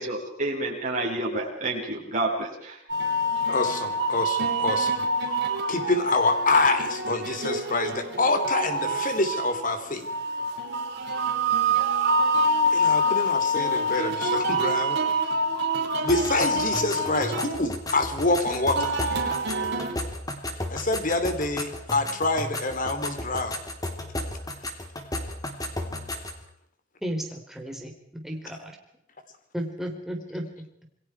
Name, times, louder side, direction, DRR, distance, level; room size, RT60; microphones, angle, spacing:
voice 1, 0.0-2.8, right 2 dB, 40° right, -1 dB, 7.8 m, -29 dB
sound 1, 2.9-19.9, right 1 dB, 60° right, 5.0 m, -26 dB
voice 2, 3.5-5.0 5.7-10.1 12.7-15.0 16.0-18.9 20.7-23.6 25.9-26.0, left 2 dB, 45° left, 8 dB, 3.2 m, -26 dB
sound 2, 16.1-26.4, left 1 dB, 20° left, 3.5 m, -34 dB
voice 3, 27.0-28.8 29.5-30.7, equal, ahead, 1 dB, 4.0 m, -34 dB
28.5 x 22.0 x 4.7 m, 0.74 s
head